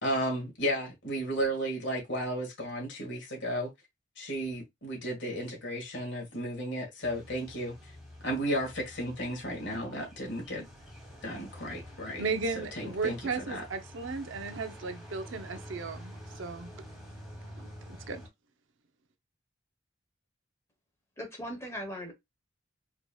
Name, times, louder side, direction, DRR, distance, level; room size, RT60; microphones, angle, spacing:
voice 1, 0.0-3.7 4.2-7.7 8.2-10.7 11.2-12.2 12.5-13.6, equal, 60° left, 1.8 m, -33 dB
sound 1, 7.0-18.3, equal, ahead, 1.3 m, -48 dB
voice 2, 12.2-16.7 17.6-18.2, right 4 dB, 65° right, 0.6 m, -35 dB
voice 3, 21.2-22.1, equal, 15° left, 1.0 m, -38 dB
4.4 x 2.9 x 2.3 m
head